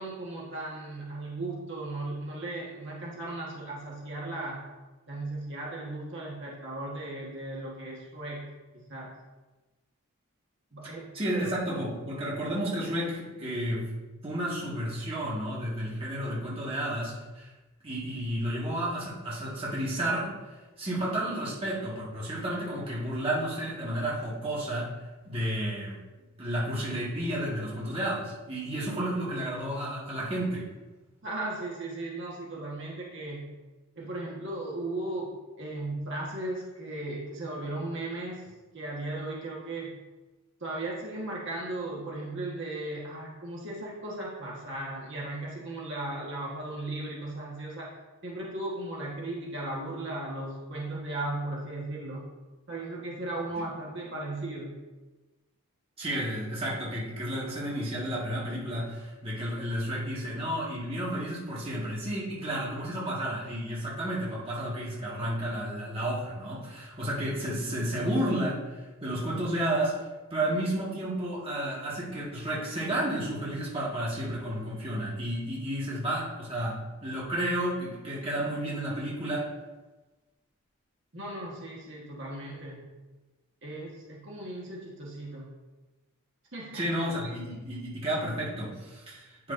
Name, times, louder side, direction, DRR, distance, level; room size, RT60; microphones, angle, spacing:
voice 1, 0.0-4.6 5.1-8.5 8.9-9.1 10.7-11.5 31.2-33.5 33.9-35.3 35.6-38.5 38.7-39.9 40.6-47.9 48.2-52.2 52.7-54.8 81.1-82.8 83.6-85.5 86.5-86.9, right 2 dB, 55° right, -4 dB, 1.5 m, -36 dB
voice 2, 11.1-13.9 14.2-17.5 17.8-20.3 20.8-24.9 25.3-26.0 26.4-30.7 56.0-70.0 70.3-79.5 86.7-89.5, right 1 dB, 25° right, -6 dB, 1.7 m, -32 dB
8.9 x 6.2 x 2.6 m, 1.2 s
head